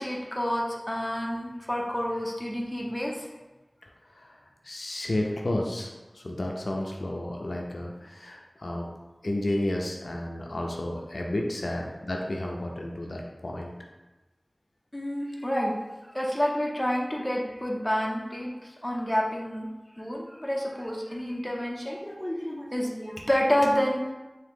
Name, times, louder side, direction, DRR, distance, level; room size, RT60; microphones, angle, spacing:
voice 1, 0.0-3.3 14.9-15.7 16.1-19.7 20.0-24.0, equal, 15° left, -2 dB, 0.6 m, -29 dB
voice 2, 4.0-4.4 4.6-8.9 9.2-13.7, left 1 dB, 75° left, 0 dB, 0.4 m, -32 dB
3.7 x 2.7 x 3.6 m, 1.1 s
wide cardioid pair, 55°, 0 cm